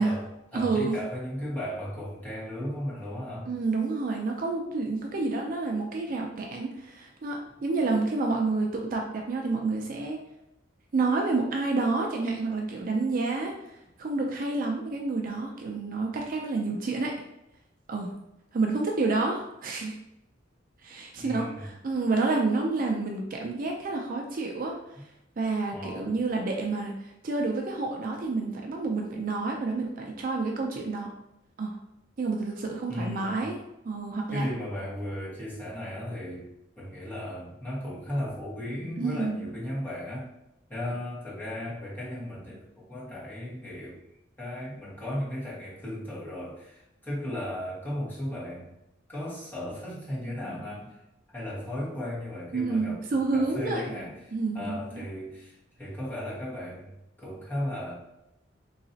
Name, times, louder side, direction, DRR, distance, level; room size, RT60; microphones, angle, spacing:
voice 1, 0.0-3.5 21.2-21.7 25.7-26.1 32.9-33.4 34.3-36.5 36.8-40.3 40.7-44.0 44.4-48.7 49.1-51.0 51.3-56.9 57.2-58.0, left 1 dB, 10° left, -8 dB, 1.3 m, -36 dB
voice 2, 0.5-1.0 3.5-10.2 10.9-17.1 17.9-18.1 18.5-19.9 20.8-24.8 25.4-31.1 31.6-31.8 32.2-33.6 33.8-34.5 39.0-39.5 52.5-53.9 54.3-55.0, right 3 dB, 45° right, 1 dB, 0.4 m, -29 dB
3.9 x 2.9 x 2.7 m, 0.88 s
head